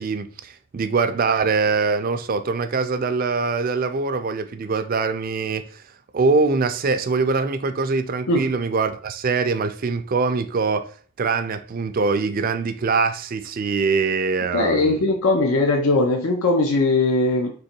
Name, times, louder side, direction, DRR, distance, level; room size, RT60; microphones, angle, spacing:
voice 1, 0.0-5.8 6.1-10.9 11.2-15.0, right 4 dB, 40° right, 0.4 m, -23 dB
voice 2, 14.5-17.5, left 2 dB, 65° left, 0.6 m, -20 dB
3.8 x 2.9 x 4.4 m
head